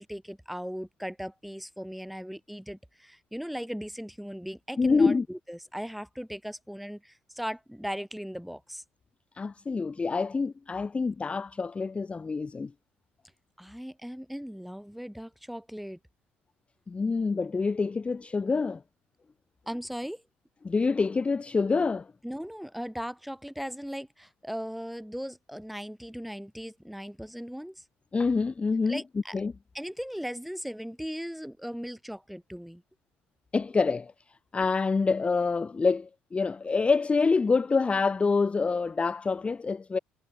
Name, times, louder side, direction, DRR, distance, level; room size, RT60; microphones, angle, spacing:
voice 1, 0.0-8.8 13.6-16.0 19.7-20.2 22.2-27.8 28.9-29.4 29.7-32.8, equal, ahead, 2.4 m, -38 dB
voice 2, 4.8-5.3 9.4-12.7 16.9-18.8 20.6-22.1 28.1-29.0 29.3-29.5 33.5-34.1 34.5-40.0, left 4 dB, 25° left, 0.5 m, -26 dB
hypercardioid pair, 60°, 5 cm